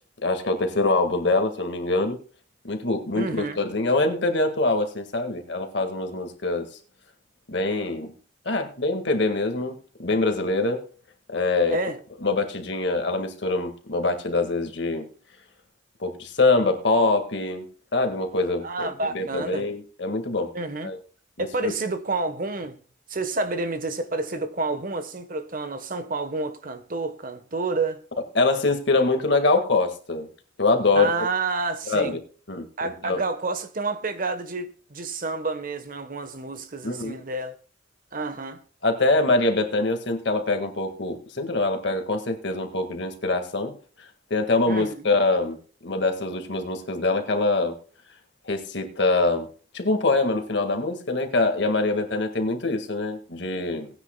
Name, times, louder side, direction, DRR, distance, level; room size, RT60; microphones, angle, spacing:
voice 1, 0.2-2.2 2.6-6.7 7.5-8.1 8.5-10.8 11.3-11.8 12.2-15.1 16.0-20.5 20.8-21.0 21.4-21.7 28.4-30.3 30.6-31.1 31.9-32.2 32.5-33.2 36.8-37.2 38.8-45.6 45.8-47.8 48.4-49.5 49.7-53.9, left 3 dB, 60° left, 1.8 m, -24 dB
voice 2, 3.1-3.6 11.7-12.0 18.6-19.7 20.5-20.9 21.4-22.8 23.1-28.0 30.9-32.2 32.8-37.5 38.1-38.6 44.7-45.1, right 3 dB, 45° right, 1.1 m, -29 dB
19.0 x 9.7 x 2.3 m
head